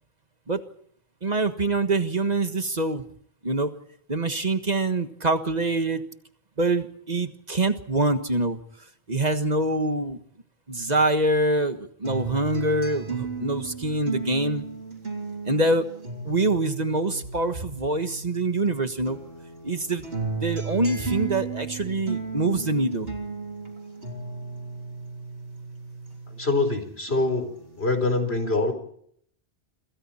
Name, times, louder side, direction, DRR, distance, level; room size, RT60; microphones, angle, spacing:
voice 1, 1.2-3.0 3.4-3.7 4.1-6.0 6.6-8.6 9.1-10.2 10.7-14.6 15.5-15.8 16.2-19.2 19.6-20.1 20.4-23.1, right 2 dB, 40° right, 8 dB, 1.6 m, -25 dB
sound 1, 12.0-18.7 19.1-26.7 27.1-28.0, right 4 dB, 70° right, 3.7 m, -35 dB
voice 2, 26.3-27.5 27.8-28.7, left 3 dB, 75° left, 7 dB, 4.5 m, -24 dB
27.0 x 26.5 x 4.4 m, 0.66 s
omnidirectional pair, 1.1 m